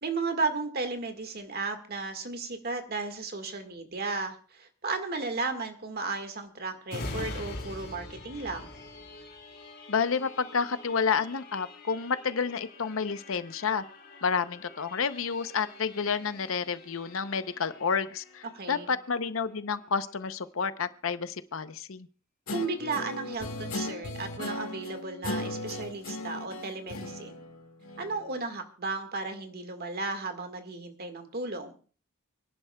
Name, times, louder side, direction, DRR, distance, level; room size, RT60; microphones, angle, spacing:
voice 1, 0.0-8.7 18.5-18.9 22.5-27.4 28.0-31.7, right 3 dB, 50° right, 7 dB, 1.7 m, -34 dB
sound 1, 6.9-20.2 20.6-20.8, left 2 dB, 50° left, 3.5 m, -45 dB
voice 2, 9.9-13.8 14.2-22.1, left 5 dB, 70° left, 12 dB, 0.7 m, -30 dB
Guitar, 22.5-28.3, left 2 dB, 90° left, 1.7 m, -37 dB
28.5 x 11.0 x 2.3 m, 0.39 s
head